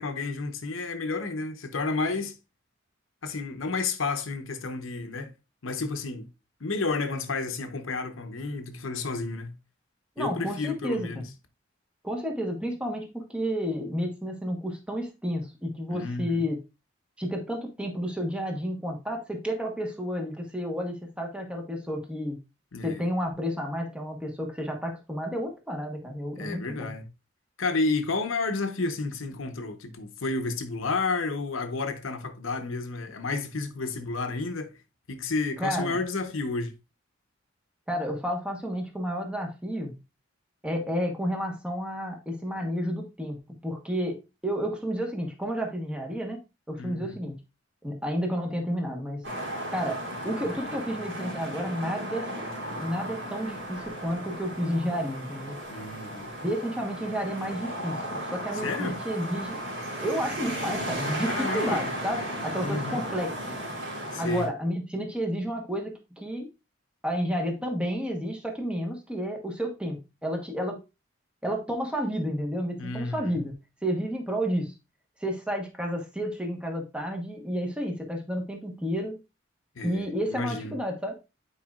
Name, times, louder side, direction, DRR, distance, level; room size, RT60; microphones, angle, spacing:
voice 1, 0.0-2.3 3.2-5.3 5.6-6.3 6.6-9.5 10.2-11.2 15.9-16.5 22.7-23.1 26.3-27.1 27.6-34.7 35.1-36.7 46.8-47.2 55.7-56.3 58.6-59.0 61.3-61.8 62.6-63.0 64.1-64.4 72.8-73.4 79.8-80.8, left 3 dB, 85° left, 0.9 m, -31 dB
voice 2, 10.2-11.3 12.0-16.6 17.2-22.4 22.8-26.9 35.6-36.0 37.9-40.0 40.6-43.4 43.6-46.4 46.7-47.4 47.8-49.3 49.7-52.3 52.7-55.6 56.4-59.6 60.0-63.6 64.2-66.5 67.0-70.8 71.4-73.6 73.8-74.7 75.2-79.2 79.8-81.2, equal, 5° right, 1.2 m, -31 dB
sound 1, 49.2-64.5, right 1 dB, 75° right, 3.0 m, -35 dB
8.8 x 4.8 x 2.4 m
head